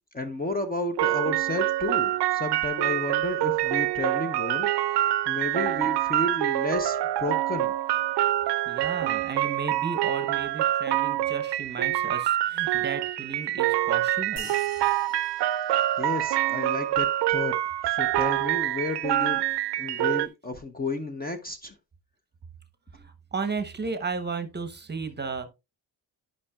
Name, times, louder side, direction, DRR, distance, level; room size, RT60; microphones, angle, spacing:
voice 1, 0.1-7.7 15.7-17.5 17.8-19.4 19.8-21.7, left 2 dB, 20° left, 0.7 m, -32 dB
sound 1, 1.0-20.3, right 14 dB, 70° right, 0.5 m, -26 dB
voice 2, 8.7-14.5 22.9-25.5, right 4 dB, 25° right, 0.9 m, -34 dB
sound 2, 14.4-17.1, left 2 dB, 65° left, 4.2 m, -48 dB
11.5 x 5.5 x 2.2 m
wide cardioid pair, 155°, 43 cm